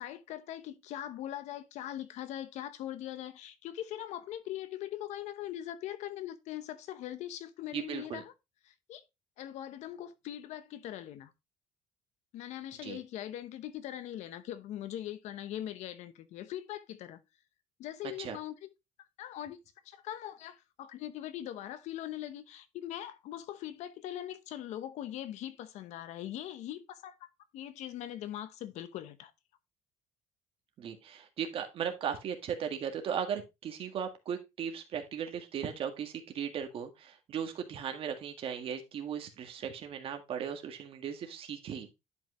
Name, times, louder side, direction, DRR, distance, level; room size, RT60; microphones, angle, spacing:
voice 1, 0.0-8.3 8.6-9.0 9.4-11.3 12.3-17.2 17.8-18.7 19.2-19.6 19.8-29.3, left 12 dB, 70° left, 0.9 m, -41 dB
voice 2, 7.7-8.2 12.8-13.0 18.2-18.4 30.8-41.9, right 8 dB, 50° right, 1.7 m, -37 dB
10.5 x 5.2 x 3.1 m
cardioid pair, 150°, 12 cm